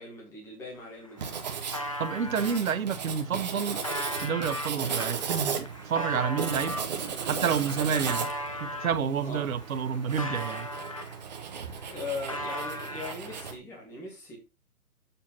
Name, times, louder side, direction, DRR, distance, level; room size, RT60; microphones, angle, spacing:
voice 1, 0.0-1.3 9.2-9.4 11.9-14.4, left 3 dB, 5° left, 1.3 m, -39 dB
sound 1, 0.7-0.8 1.0-2.6 3.2-9.0 9.5-11.4 11.7-13.5, left 1 dB, 25° left, 0.5 m, -38 dB
Writing, 1.2-13.6, right 6 dB, 30° right, 1.1 m, -36 dB
voice 2, 2.0-3.8 4.1-6.8 7.2-8.3 8.6-10.7, right 7 dB, 65° right, 1.2 m, -29 dB
7.3 x 4.3 x 5.6 m
hypercardioid pair, 170°, 44 cm